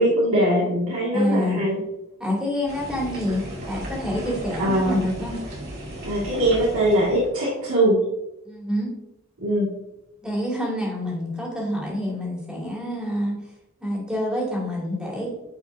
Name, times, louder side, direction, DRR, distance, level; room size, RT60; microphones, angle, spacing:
voice 1, 0.0-1.8 4.6-5.1 6.0-8.0 9.4-9.7, right 1 dB, 85° right, -7 dB, 1.8 m, -21 dB
voice 2, 1.1-1.7 2.2-5.4 8.4-8.9 10.2-13.4 13.8-15.3, left 1 dB, 5° right, -4 dB, 2.3 m, -27 dB
sound 1, 2.7-7.3, right 1 dB, 50° right, 2.5 m, -35 dB
9.4 x 5.0 x 2.5 m, 0.91 s
head